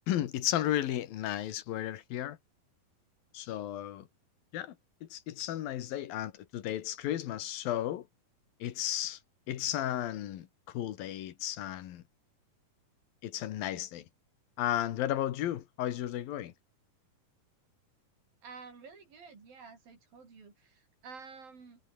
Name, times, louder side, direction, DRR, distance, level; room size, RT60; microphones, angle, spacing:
voice 1, 0.1-2.4 3.3-4.1 4.5-4.8 5.0-8.1 8.6-9.2 9.5-12.0 13.2-14.0 14.6-16.5, left 12 dB, 90° left, 3.3 m, -34 dB
voice 2, 18.4-21.8, right 5 dB, 85° right, 7.5 m, -50 dB
omnidirectional pair, 4.0 m